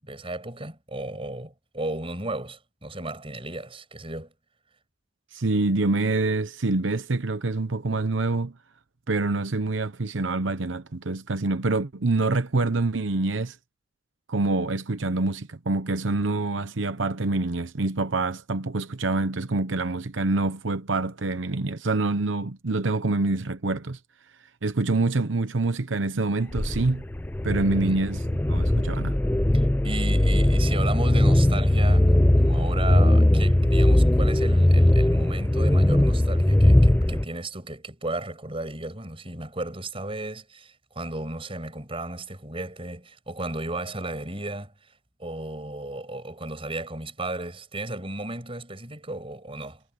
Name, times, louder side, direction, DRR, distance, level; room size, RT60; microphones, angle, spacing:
voice 1, 0.0-4.3 27.8-28.0 29.5-44.9 45.2-49.8, right 2 dB, 30° right, 7.2 m, -34 dB
voice 2, 5.3-8.5 9.1-13.6 14.3-24.0 24.6-27.0 27.4-28.2 28.5-29.2, right 3 dB, 85° right, 0.9 m, -26 dB
sound 1, 26.5-37.2, left 1 dB, 10° left, 0.4 m, -20 dB
head